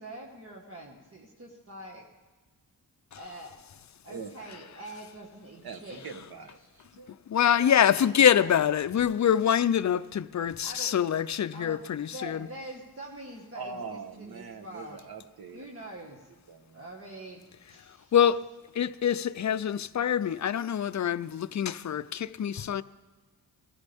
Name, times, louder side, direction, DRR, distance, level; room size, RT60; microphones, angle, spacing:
voice 1, 0.0-2.1 3.1-3.6 4.0-6.0 7.6-8.5 10.6-10.9 11.5-11.8 12.1-15.0 15.5-16.3 16.7-18.1, right 1 dB, 35° right, 1.7 m, -44 dB
voice 2, 5.6-7.2 13.5-15.6 16.5-16.8, right 5 dB, 70° right, 1.3 m, -42 dB
voice 3, 7.1-12.5 17.8-18.4 18.7-22.8, left 9 dB, 50° left, 0.5 m, -25 dB
21.0 x 15.0 x 3.5 m
wide cardioid pair, 115°, 39 cm